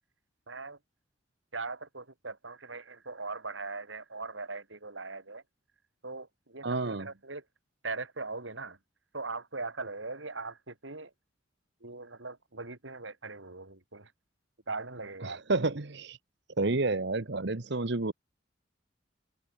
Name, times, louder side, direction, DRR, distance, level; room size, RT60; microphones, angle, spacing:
voice 1, 0.5-0.8 1.5-5.4 6.0-7.4 7.8-8.8 9.1-11.1 11.8-14.1 14.7-15.4, right 3 dB, 80° right, 3.8 m, -40 dB
voice 2, 6.6-7.1 15.2-16.2 16.6-18.1, right 3 dB, 65° right, 1.2 m, -30 dB
head